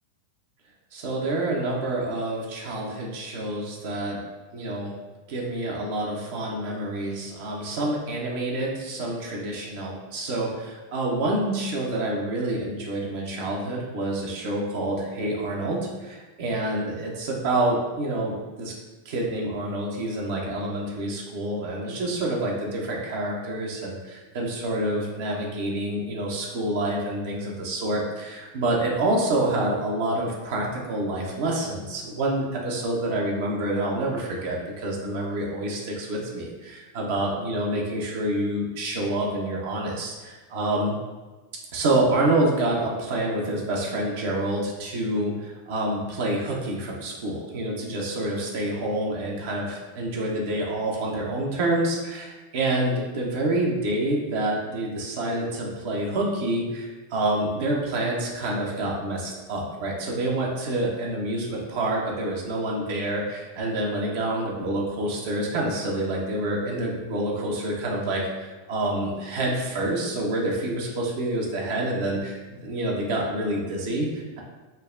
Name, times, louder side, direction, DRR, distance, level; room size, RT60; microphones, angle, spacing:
voice 1, 0.9-4.2 4.5-4.9 5.3-18.7 19.0-40.9 41.7-74.4, right 1 dB, 60° right, -2 dB, 0.7 m, -27 dB
5.2 x 2.1 x 2.5 m, 1.2 s
figure-of-eight pair, 90°, 0 cm